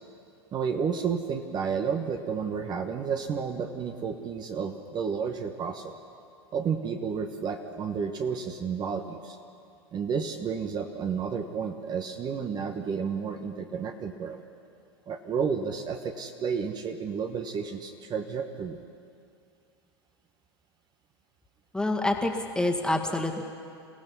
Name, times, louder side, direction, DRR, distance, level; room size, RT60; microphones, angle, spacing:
voice 1, 0.5-6.0 6.5-9.4 9.9-14.4 15.1-18.8, right 6 dB, 30° right, 5 dB, 1.3 m, -31 dB
voice 2, 21.7-23.4, left 2 dB, 5° left, 2 dB, 2.0 m, -27 dB
29.0 x 16.0 x 5.6 m, 2.4 s
hypercardioid pair, 90°, 14 cm